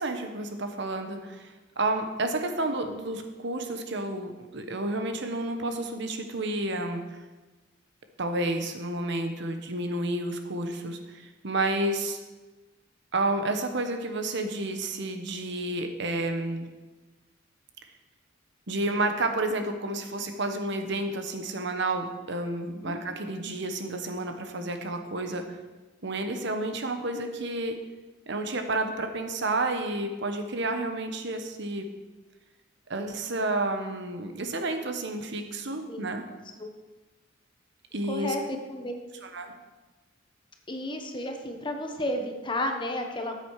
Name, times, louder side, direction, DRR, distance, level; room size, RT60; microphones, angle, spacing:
voice 1, 0.0-7.2 8.2-12.2 13.1-16.7 18.7-25.6 26.0-27.8 28.3-31.9 32.9-36.2 37.9-38.3 39.2-39.5, right 2 dB, 60° right, 6 dB, 1.2 m, -30 dB
voice 2, 38.1-39.0 40.7-43.4, left 1 dB, 25° left, 4 dB, 1.2 m, -32 dB
14.0 x 8.1 x 4.9 m, 1.2 s
head